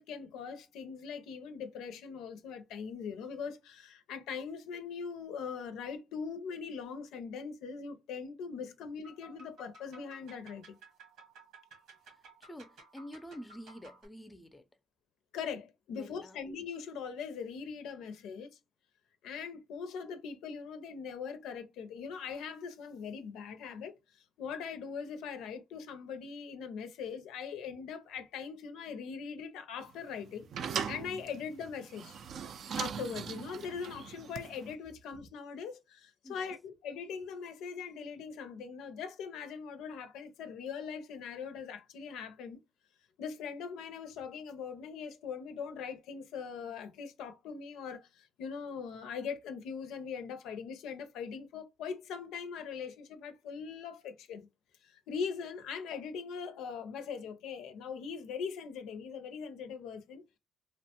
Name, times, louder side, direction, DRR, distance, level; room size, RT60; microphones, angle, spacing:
voice 1, 0.0-10.8 15.3-18.5 19.2-23.9 24.4-30.5 30.9-32.2 32.8-42.6 43.2-54.5 54.8-60.2, left 6 dB, 90° left, 0.5 m, -41 dB
sound 1, 9.0-14.1, right 2 dB, 90° right, 1.2 m, -56 dB
voice 2, 12.1-14.7 15.9-16.4 36.2-36.5, equal, 15° left, 0.4 m, -48 dB
sound 2, 29.8-34.7, right 7 dB, 65° right, 0.3 m, -40 dB
2.8 x 2.1 x 2.8 m
cardioid pair, 90°, 0 cm